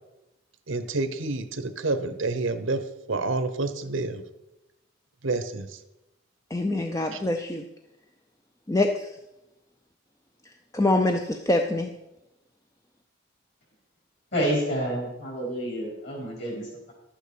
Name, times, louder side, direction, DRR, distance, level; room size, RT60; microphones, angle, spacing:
voice 1, 0.7-2.8 3.1-4.2 5.2-5.7 7.1-7.2, right 3 dB, 70° right, 0.9 m, -28 dB
voice 2, 6.5-7.7 8.7-9.1 10.7-11.9, left 2 dB, 15° left, 0.5 m, -24 dB
voice 3, 14.3-16.9, equal, 55° left, 5.1 m, -29 dB
12.0 x 9.1 x 5.1 m
head